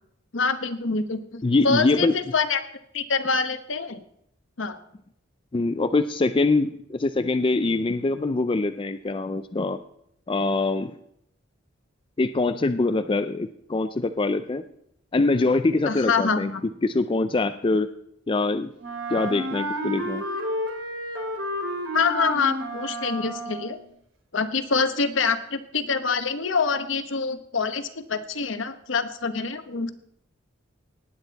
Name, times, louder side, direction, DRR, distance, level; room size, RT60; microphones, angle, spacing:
voice 1, 0.3-2.7 2.9-4.0 4.6-4.8 15.8-16.6 21.9-23.8 24.3-29.9, left 4 dB, 70° left, 10 dB, 1.0 m, -26 dB
voice 2, 1.4-2.1 5.5-9.8 10.3-10.9 12.2-14.6 15.1-16.5 16.8-17.9 18.3-18.7 19.1-20.2, left 3 dB, 25° left, 10 dB, 0.4 m, -23 dB
Wind instrument woodwind instrument, 18.8-23.8, equal, 70° right, 2.8 m, -31 dB
18.5 x 8.9 x 4.1 m, 0.74 s
head